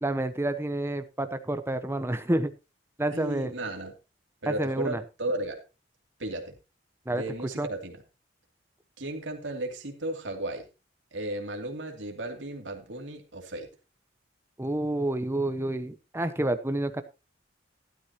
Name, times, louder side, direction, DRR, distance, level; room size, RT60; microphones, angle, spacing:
voice 1, 0.0-2.5 3.0-3.5 4.5-5.0 7.1-7.2 7.6-7.7 14.6-17.0, right 1 dB, 15° right, 10 dB, 0.8 m, -29 dB
voice 2, 3.0-3.9 4.4-5.6 6.2-6.5 7.1-8.0 9.0-10.7 11.1-13.7, right 1 dB, 70° right, 3 dB, 2.6 m, -35 dB
13.5 x 11.5 x 2.9 m, 0.29 s
head